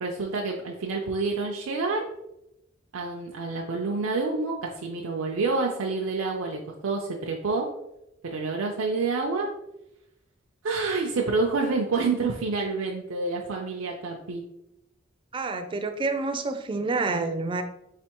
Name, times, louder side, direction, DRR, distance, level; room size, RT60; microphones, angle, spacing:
voice 1, 0.0-2.1 2.9-7.7 8.2-9.5 10.6-14.4, right 3 dB, 85° right, 0 dB, 0.5 m, -28 dB
voice 2, 15.3-17.6, right 3 dB, 25° right, 8 dB, 0.3 m, -28 dB
4.4 x 3.3 x 2.9 m, 0.86 s
head